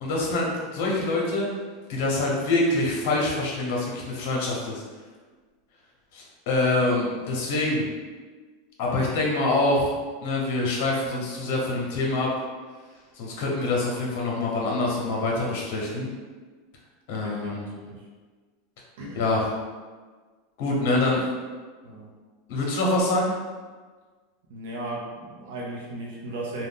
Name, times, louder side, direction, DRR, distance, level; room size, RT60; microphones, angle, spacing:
voice 1, 0.0-1.5 1.9-4.8 6.1-7.9 8.8-9.9 10.2-12.3 13.2-16.1 17.1-17.6 19.1-19.4 20.6-21.2 22.5-23.3, left 2 dB, 60° left, -2 dB, 0.8 m, -25 dB
voice 2, 17.2-18.0 19.0-19.2 20.8-21.2 21.8-22.1 24.5-26.7, right 2 dB, 80° right, -4 dB, 0.7 m, -36 dB
2.5 x 2.3 x 3.5 m, 1.4 s
supercardioid pair, 155°, 0 cm